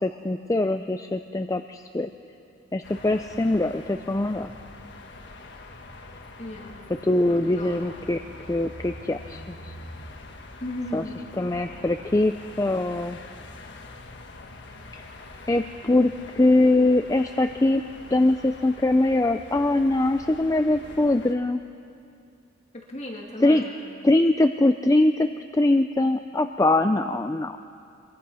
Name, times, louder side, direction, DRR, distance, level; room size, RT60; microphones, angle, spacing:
voice 1, 0.0-2.1 2.7-4.5 7.0-8.2 8.5-9.7 10.9-11.0 11.4-13.2 14.9-15.0 15.5-17.8 18.1-21.6 23.4-23.7 24.0-27.6, left 2 dB, 15° left, 7 dB, 0.5 m, -22 dB
sound 1, 2.8-21.3, left 2 dB, 60° left, 1.5 m, -44 dB
voice 2, 6.4-6.8 7.3-7.8 10.6-11.2 22.7-23.7, left 1 dB, 35° left, -1 dB, 2.5 m, -36 dB
25.0 x 22.5 x 5.6 m, 2.5 s
head